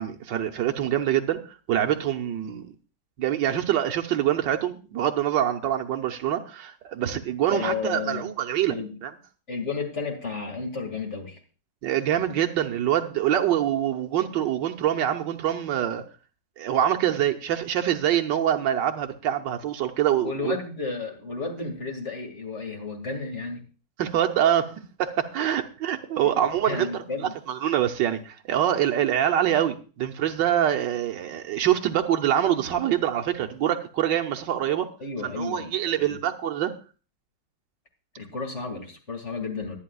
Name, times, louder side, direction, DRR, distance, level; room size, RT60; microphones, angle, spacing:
voice 1, 0.0-1.4 1.7-2.7 3.2-8.8 9.0-9.1 11.8-16.0 16.6-20.6 24.0-24.7 25.0-26.9 27.5-34.9 35.2-36.7, right 11 dB, 80° right, 1.6 m, -25 dB
voice 2, 7.5-8.3 8.7-8.9 9.5-11.4 20.2-23.6 26.2-26.3 26.6-27.3 35.0-36.2 38.2-39.8, left 4 dB, 40° left, 2.5 m, -32 dB
22.0 x 9.6 x 2.4 m
omnidirectional pair, 1.9 m